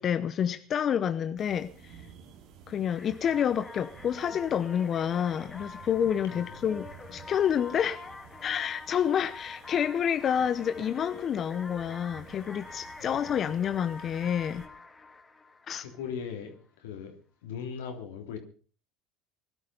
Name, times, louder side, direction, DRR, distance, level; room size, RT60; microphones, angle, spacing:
voice 1, 0.0-2.0 2.7-8.0 8.4-14.7 15.7-15.8, left 8 dB, 45° left, 0.9 m, -29 dB
sound 1, 1.4-14.7, right 7 dB, 70° right, 2.7 m, -53 dB
sound 2, 2.9-16.3, left 3 dB, 20° left, 2.3 m, -46 dB
voice 2, 6.3-6.7 13.0-13.7 15.8-17.1 17.4-18.4, left 7 dB, 90° left, 3.2 m, -40 dB
19.5 x 12.0 x 5.5 m
supercardioid pair, 90°, 0 cm